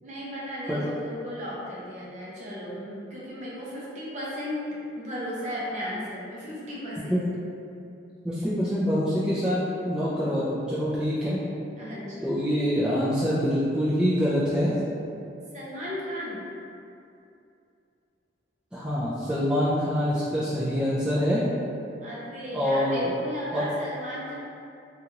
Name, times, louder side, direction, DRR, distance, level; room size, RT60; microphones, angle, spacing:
voice 1, 0.0-4.7 5.0-7.3 11.8-12.3 15.5-16.4 22.0-24.3, equal, 40° right, -7 dB, 0.6 m, -35 dB
voice 2, 8.2-11.4 12.2-14.7 18.7-21.4 22.5-23.1 23.5-23.6, equal, 5° right, -11 dB, 0.3 m, -25 dB
2.8 x 2.4 x 2.8 m, 2.6 s
head